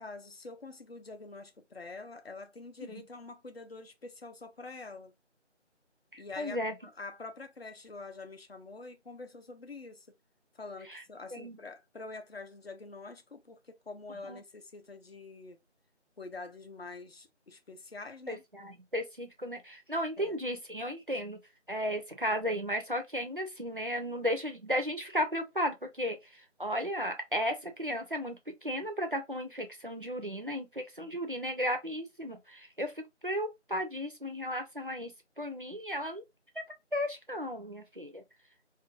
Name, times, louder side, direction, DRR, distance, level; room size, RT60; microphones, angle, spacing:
voice 1, 0.0-5.1 6.2-10.1 10.5-15.6 16.2-18.4 20.2-20.4, left 3 dB, 55° left, 0.5 m, -46 dB
voice 2, 6.1-6.7 10.9-11.0 11.3-11.6 14.3-14.4 18.3-21.4 21.7-26.2 26.6-32.9 33.2-36.2 36.9-38.2, equal, 45° right, 0.5 m, -34 dB
2.5 x 2.2 x 2.3 m
figure-of-eight pair, 175°, 36 cm